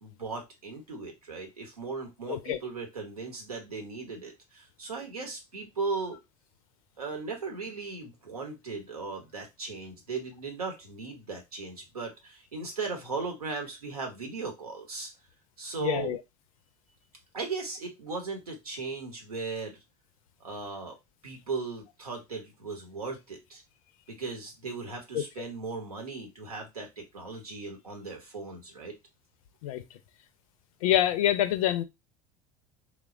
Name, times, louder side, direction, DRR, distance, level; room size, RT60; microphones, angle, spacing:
voice 1, 0.0-6.2 7.0-15.1 15.6-16.1 17.3-19.8 20.4-21.0 21.2-23.6 24.1-28.9, right 4 dB, 85° right, 0.9 m, -37 dB
voice 2, 15.8-16.2 25.1-25.2 29.6-29.8 30.8-31.8, left 11 dB, 65° left, 0.4 m, -26 dB
3.1 x 2.2 x 2.4 m
figure-of-eight pair, 75°, 19 cm